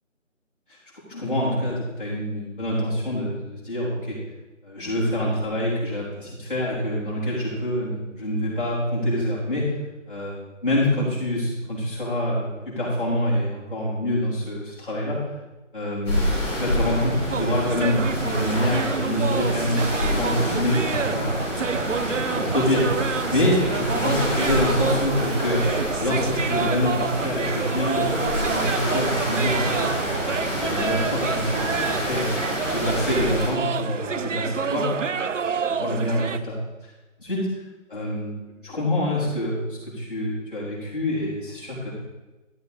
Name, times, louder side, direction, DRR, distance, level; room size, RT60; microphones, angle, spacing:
voice 1, 1.1-4.2 4.6-9.7 10.1-15.2 15.7-21.4 22.0-22.9 23.3-25.7 26.0-30.1 30.6-32.3 32.6-35.3 35.7-36.6 37.2-37.5 37.9-38.3 38.6-41.9, left 1 dB, 40° left, -7 dB, 3.6 m, -26 dB
sound 1, 16.1-33.5, equal, 20° left, 3.3 m, -28 dB
sound 2, 17.3-36.4, right 6 dB, 70° right, 0.5 m, -29 dB
11.5 x 6.8 x 4.2 m, 1.1 s
figure-of-eight pair, 180°, 39 cm